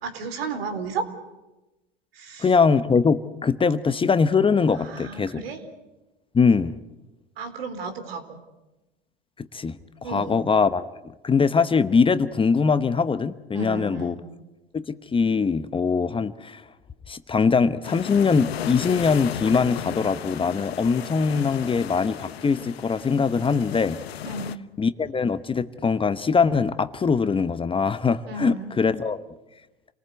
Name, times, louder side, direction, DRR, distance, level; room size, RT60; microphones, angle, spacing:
voice 1, 0.0-1.1 2.1-2.6 4.7-5.6 7.4-8.4 10.0-10.4 13.5-14.2 24.2-24.6 28.3-28.7, right 4 dB, 75° right, 7 dB, 4.0 m, -33 dB
voice 2, 2.4-5.3 6.3-6.8 9.4-10.8 11.2-14.2 14.7-16.6 17.1-24.0 24.8-29.2, left 5 dB, 15° left, 12 dB, 0.9 m, -22 dB
sound 1, 17.8-24.6, left 10 dB, 80° left, 1.0 m, -35 dB
28.5 x 19.5 x 8.1 m, 1.1 s
hypercardioid pair, 90°, 30 cm